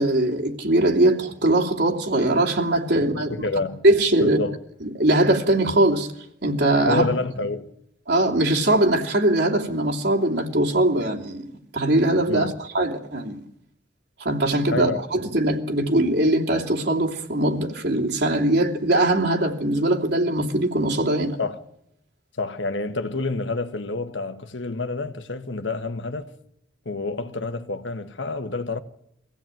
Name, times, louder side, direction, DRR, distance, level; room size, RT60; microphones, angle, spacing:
voice 1, 0.0-3.3 3.8-4.4 4.8-6.1 6.4-7.1 8.1-13.4 14.2-21.4, right 1 dB, 65° right, 2.9 m, -21 dB
voice 2, 3.0-3.8 4.2-4.6 6.9-7.7 12.3-12.5 14.7-15.0 21.4-21.6 22.4-26.4 26.8-28.8, left 3 dB, 85° left, 1.5 m, -28 dB
24.0 x 16.5 x 9.1 m
head